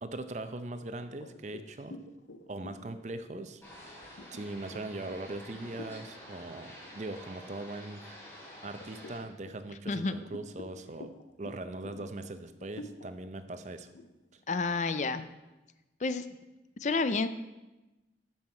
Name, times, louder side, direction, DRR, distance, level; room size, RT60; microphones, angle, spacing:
voice 1, 0.0-2.0 2.5-3.6 4.3-8.0 8.6-11.1 11.4-13.9, right 2 dB, 40° right, 10 dB, 0.5 m, -40 dB
sound 1, 1.0-6.1 6.6-6.8 7.3-8.1 8.6-15.3, left 2 dB, 85° left, 0.7 m, -50 dB
sound 2, 3.6-9.2, equal, 15° left, 3.2 m, -49 dB
voice 2, 14.5-15.3 16.0-16.2 16.8-17.3, left 3 dB, 40° left, 11 dB, 0.4 m, -29 dB
13.5 x 5.6 x 4.4 m, 1.0 s
head